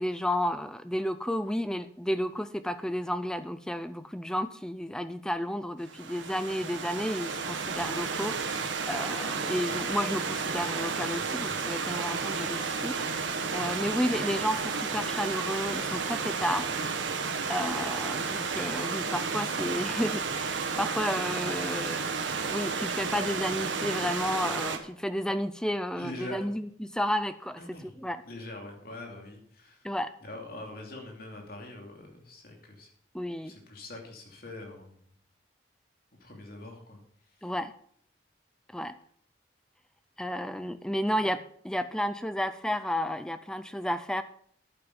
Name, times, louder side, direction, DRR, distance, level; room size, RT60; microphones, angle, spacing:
voice 1, 0.0-16.7 17.5-22.1 22.5-28.2 29.8-30.1 33.1-33.5 37.4-37.7 38.7-38.9 40.2-44.2, equal, 5° left, 12 dB, 0.4 m, -32 dB
Stream / Liquid, 5.8-24.8, right 5 dB, 90° right, 1.4 m, -32 dB
voice 2, 25.9-26.4 27.6-27.9 28.2-29.8 30.2-32.9 33.4-34.9 36.2-37.0, left 2 dB, 55° left, 1 dB, 2.8 m, -43 dB
11.0 x 9.0 x 5.3 m, 0.63 s
head